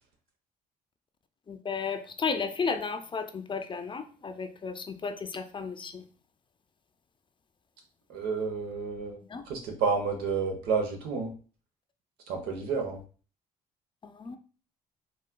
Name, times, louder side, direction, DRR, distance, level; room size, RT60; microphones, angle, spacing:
voice 1, 1.5-6.0 9.2-9.4 14.0-14.4, left 5 dB, 30° left, 8 dB, 0.4 m, -34 dB
voice 2, 8.1-9.2 9.5-11.3 12.3-13.0, right 5 dB, 85° right, 3 dB, 0.8 m, -30 dB
4.0 x 2.4 x 2.2 m, 0.39 s
supercardioid pair, 75°, 16 cm